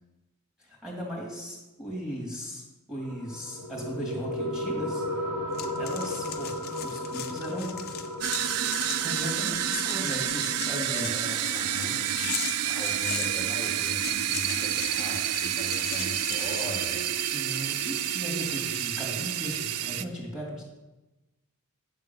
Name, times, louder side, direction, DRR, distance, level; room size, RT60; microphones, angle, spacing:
voice 1, 0.6-5.0 5.8-7.8 8.6-11.1 17.3-20.6, equal, 5° right, -5 dB, 2.3 m, -37 dB
sound 1, 3.0-14.0, left 1 dB, 70° right, 1.4 m, -36 dB
sound 2, 5.5-13.3 13.9-17.4 17.8-18.8, left 10 dB, 45° left, 0.5 m, -39 dB
sound 3, 8.2-20.0, right 11 dB, 90° right, 0.4 m, -29 dB
voice 2, 10.9-17.0, left 1 dB, 15° left, -6 dB, 1.3 m, -40 dB
9.7 x 3.7 x 6.8 m, 1.0 s
head